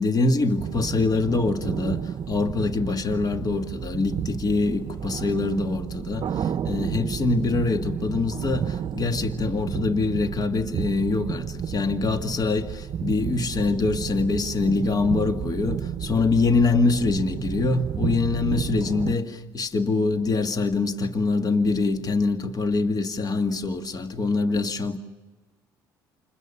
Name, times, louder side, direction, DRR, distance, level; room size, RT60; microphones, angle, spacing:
voice 1, 0.0-25.0, left 3 dB, 40° left, 1.9 m, -24 dB
sound 1, 0.6-19.2, right 8 dB, 50° right, 0.8 m, -32 dB
29.0 x 27.5 x 6.9 m
hypercardioid pair, 55°, 10 cm